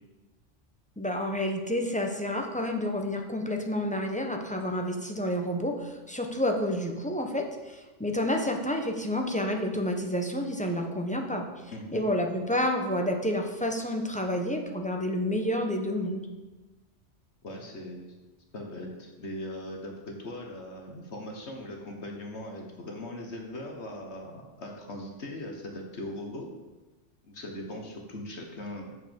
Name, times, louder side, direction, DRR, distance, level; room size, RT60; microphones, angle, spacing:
voice 1, 1.0-11.4 11.9-16.3, left 1 dB, 5° left, 2 dB, 0.9 m, -29 dB
voice 2, 11.7-12.0 13.0-13.1 17.4-18.1 18.5-26.5 27.2-29.0, left 1 dB, 65° left, 2 dB, 1.7 m, -40 dB
7.3 x 6.7 x 7.1 m, 1.1 s
omnidirectional pair, 1.3 m